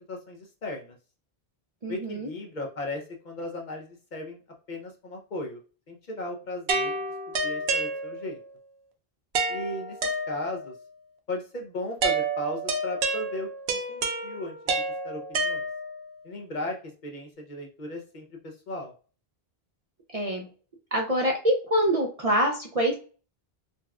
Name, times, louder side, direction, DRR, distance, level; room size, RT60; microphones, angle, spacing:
voice 1, 0.1-1.0 1.9-4.4 4.7-5.6 5.9-6.9 7.4-8.4 9.5-10.0 10.3-10.7 11.3-14.6 15.0-15.7 16.2-16.8 17.0-18.9, left 1 dB, 55° left, 1 dB, 0.7 m, -36 dB
voice 2, 1.8-2.3 20.1-20.5 20.9-22.9, equal, 45° right, 0 dB, 0.5 m, -25 dB
sound 1, 6.7-8.5 9.3-10.8 12.0-16.1, right 3 dB, 85° right, 0.9 m, -29 dB
4.0 x 2.2 x 2.3 m, 0.38 s
omnidirectional pair, 1.0 m